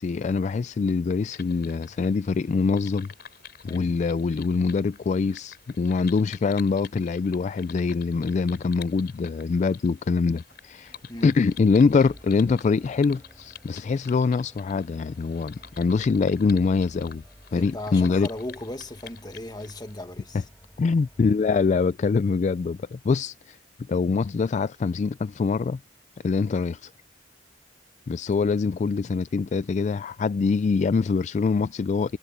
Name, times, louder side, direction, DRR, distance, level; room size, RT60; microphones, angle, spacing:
voice 1, 0.0-3.1 3.6-10.9 11.2-17.2 17.5-18.3 20.8-23.6 23.9-25.8 26.2-26.9 28.1-32.2, left 4 dB, 45° left, 0.3 m, -24 dB
sound 1, 1.3-20.0, left 8 dB, 65° left, 3.8 m, -48 dB
voice 2, 3.7-4.0 11.1-11.4 17.5-20.4, left 1 dB, 25° left, 1.7 m, -37 dB
sound 2, 8.9-9.2 9.5-9.6 9.9-10.1 10.3-21.9, equal, 5° left, 6.5 m, -53 dB
head